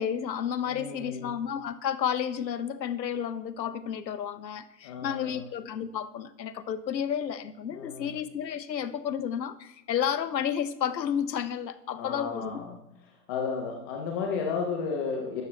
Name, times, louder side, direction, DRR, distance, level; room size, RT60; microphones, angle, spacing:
voice 1, 0.0-12.6, left 8 dB, 80° left, 15 dB, 0.8 m, -31 dB
voice 2, 0.7-1.3 4.8-5.4 7.7-8.1 12.0-12.8 13.3-15.4, left 5 dB, 15° left, 1 dB, 0.4 m, -33 dB
12.0 x 7.5 x 3.1 m, 0.84 s
hypercardioid pair, 125°, 50 cm